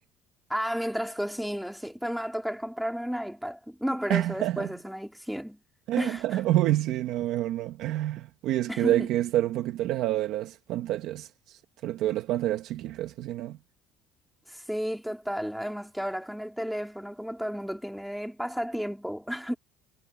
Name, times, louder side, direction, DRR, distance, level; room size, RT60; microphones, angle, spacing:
voice 1, 0.5-5.6 6.0-6.4 8.7-9.1 14.5-19.6, equal, ahead, 2.1 m, -32 dB
voice 2, 4.1-4.7 5.9-13.6, right 14 dB, 60° right, 1.3 m, -28 dB
cardioid pair, 170°, 0 cm